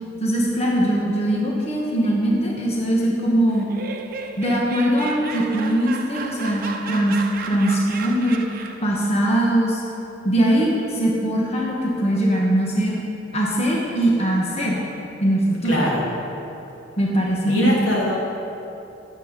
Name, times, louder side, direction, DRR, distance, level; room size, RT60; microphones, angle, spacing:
voice 1, 0.2-3.7 4.4-7.2 7.5-8.4 8.8-9.8 10.2-13.0 13.3-14.8 15.2-15.8 17.0-17.7, right 1 dB, 35° left, -3 dB, 1.5 m, -21 dB
Laughter, 3.5-9.0, right 4 dB, 50° right, 0.9 m, -34 dB
voice 2, 15.6-16.0 17.4-18.2, left 1 dB, 85° left, -4 dB, 3.0 m, -22 dB
16.5 x 7.8 x 5.3 m, 3.0 s
head